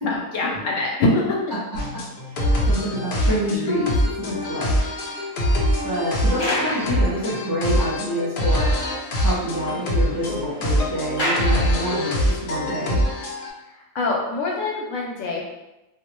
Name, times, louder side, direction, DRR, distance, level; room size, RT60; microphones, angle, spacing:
voice 1, 0.1-1.4 13.9-15.4, left 2 dB, 70° left, -2 dB, 0.9 m, -24 dB
voice 2, 1.5-2.1 2.4-4.8 5.8-8.8 9.2-13.0, equal, 25° right, -9 dB, 0.4 m, -27 dB
sound 1, 1.8-13.5, equal, 85° left, 0.4 m, -24 dB
sound 2, 4.2-8.0 8.3-8.4 8.7-8.8 9.1-12.4 13.1-13.2, left 1 dB, 45° left, 0.8 m, -33 dB
2.5 x 2.0 x 2.8 m, 0.96 s
omnidirectional pair, 1.5 m